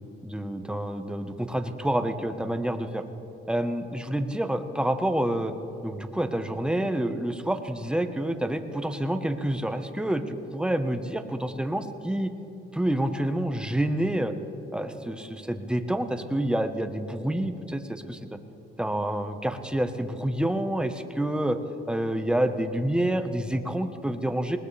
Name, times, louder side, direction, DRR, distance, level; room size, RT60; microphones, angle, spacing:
voice 1, 0.2-3.0 3.5-5.5 5.8-12.3 12.7-14.3 14.7-18.2 18.8-21.6 21.9-24.6, right 1 dB, 5° right, 7 dB, 1.1 m, -28 dB
19.5 x 19.5 x 3.4 m, 2.8 s
cardioid pair, 90°, 20 cm